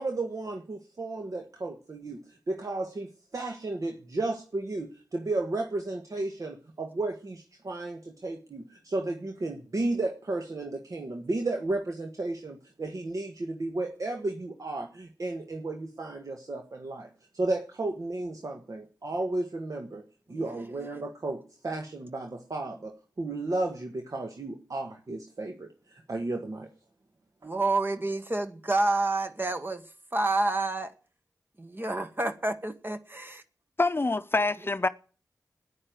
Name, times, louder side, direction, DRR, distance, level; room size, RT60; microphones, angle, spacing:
voice 1, 0.0-20.0 20.3-26.7, right 2 dB, 60° right, 1.5 m, -33 dB
voice 2, 27.4-29.8 30.1-30.9 31.6-33.4, right 2 dB, 30° right, 1.2 m, -29 dB
voice 3, 33.8-34.9, left 3 dB, 35° left, 0.7 m, -26 dB
9.9 x 9.6 x 9.3 m
cardioid pair, 45°, 7 cm